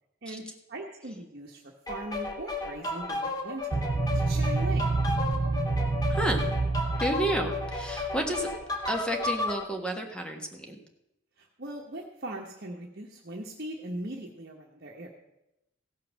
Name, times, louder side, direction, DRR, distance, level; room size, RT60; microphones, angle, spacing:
voice 1, 0.7-3.8 4.1-4.9 11.4-15.1, right 1 dB, 55° right, -1 dB, 1.1 m, -40 dB
sound 1, 1.9-9.6, left 2 dB, 20° left, 1.6 m, -33 dB
sound 2, 3.7-8.4, right 3 dB, 25° right, 0.3 m, -28 dB
voice 2, 6.1-6.4 7.0-8.5 8.9-10.8, right 1 dB, 5° left, 3 dB, 1.4 m, -31 dB
16.0 x 5.7 x 6.3 m, 0.87 s
head